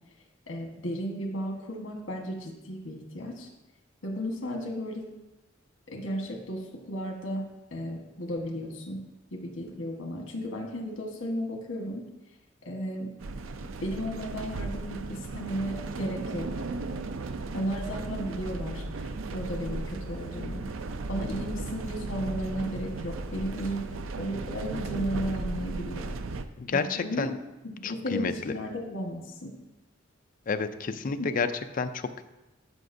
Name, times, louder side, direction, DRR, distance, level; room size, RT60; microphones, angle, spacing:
voice 1, 0.5-3.5 4.0-5.1 5.9-7.5 7.7-9.0 9.3-12.1 12.6-13.1 13.8-16.5 17.5-20.7 21.1-26.1 26.7-27.3 27.8-29.5 31.1-31.2, equal, 80° left, 2 dB, 1.4 m, -34 dB
sound 1, 13.2-26.5, right 3 dB, 90° right, 0.5 m, -36 dB
voice 2, 26.6-27.3 27.8-28.5 30.5-31.5 31.7-32.2, left 5 dB, 45° left, 9 dB, 0.4 m, -30 dB
12.5 x 5.9 x 2.7 m, 1.0 s
head